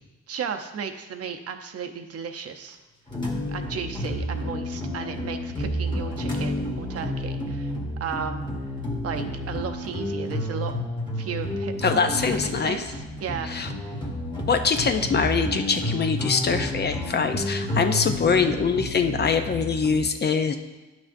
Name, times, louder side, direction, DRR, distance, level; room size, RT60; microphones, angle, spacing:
voice 1, 0.3-2.8 3.5-8.4 9.0-10.8 11.2-13.5 13.9-14.0, right 7 dB, 55° right, 6 dB, 0.7 m, -35 dB
sound 1, 3.1-20.0, left 1 dB, 15° left, 1.4 m, -30 dB
voice 2, 11.8-12.8 13.5-13.7 14.5-20.6, left 5 dB, 35° left, 7 dB, 0.5 m, -23 dB
9.9 x 6.1 x 2.6 m, 1.2 s
cardioid pair, 90°, 30 cm